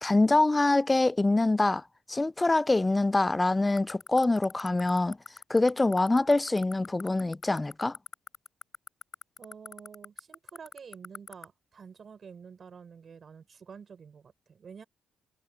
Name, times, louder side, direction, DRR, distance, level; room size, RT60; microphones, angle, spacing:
voice 1, 0.0-1.8 2.1-5.2 5.5-8.0, left 2 dB, 15° left, 0.4 m, -25 dB
sound 1, 3.8-11.4, left 5 dB, 40° left, 7.2 m, -40 dB
voice 2, 9.4-14.8, right 6 dB, 45° right, 5.6 m, -49 dB
cardioid pair, 90°, 0 cm